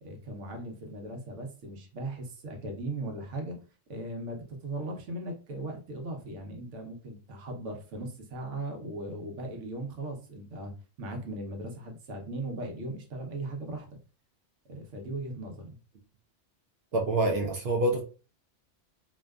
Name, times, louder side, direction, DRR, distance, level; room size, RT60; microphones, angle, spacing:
voice 1, 0.0-3.6 3.9-10.7 11.0-13.9 14.7-15.8, right 2 dB, 80° right, 3 dB, 1.1 m, -38 dB
voice 2, 16.9-18.0, right 2 dB, 65° right, 0 dB, 0.7 m, -26 dB
2.6 x 2.3 x 2.2 m, 0.35 s
omnidirectional pair, 1.2 m